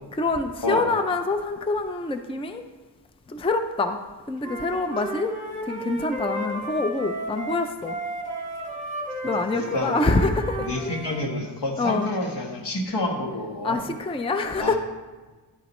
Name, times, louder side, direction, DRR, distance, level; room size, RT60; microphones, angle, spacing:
voice 1, 0.1-2.6 3.3-4.0 4.3-5.3 5.7-7.9 9.2-10.7 11.8-12.1 13.6-14.8, left 3 dB, 15° left, 7 dB, 0.4 m, -25 dB
Wind instrument woodwind instrument, 4.4-11.2, right 1 dB, 15° right, 1.8 m, -33 dB
voice 2, 9.5-10.3 10.6-13.8 14.6-14.8, left 1 dB, 70° left, 1 dB, 1.4 m, -29 dB
11.0 x 8.3 x 3.1 m, 1.3 s
wide cardioid pair, 110°, 42 cm